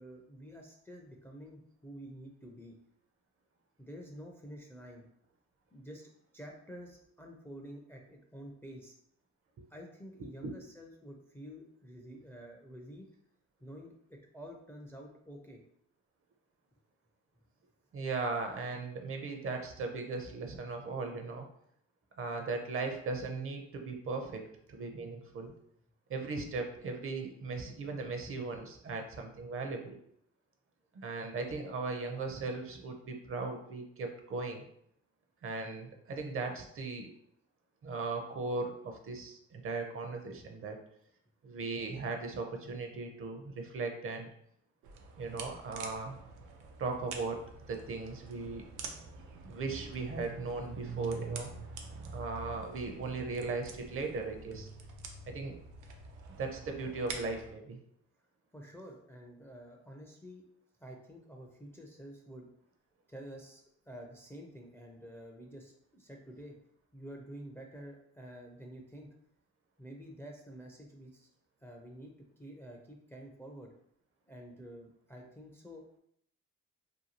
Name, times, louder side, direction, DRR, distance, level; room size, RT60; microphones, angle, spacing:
voice 1, 0.0-2.7 3.8-5.0 5.7-8.9 9.7-13.1 13.6-15.6 58.5-60.4 60.8-62.5 63.1-66.6 66.9-69.1 69.8-71.3 71.6-73.7 74.3-76.0, equal, 10° left, 1 dB, 0.4 m, -49 dB
voice 2, 17.9-21.4 22.2-25.5 26.1-30.0 30.9-34.6 35.4-37.1 37.8-40.8 41.4-44.3 45.2-46.2 46.8-47.4 47.7-48.7 49.4-51.5 52.1-54.7 55.3-55.6 56.4-57.8, right 3 dB, 45° right, 4 dB, 0.6 m, -38 dB
sound 1, 44.8-57.5, right 4 dB, 90° right, 0.5 m, -46 dB
2.7 x 2.3 x 2.8 m, 0.70 s
cardioid pair, 90°, 30 cm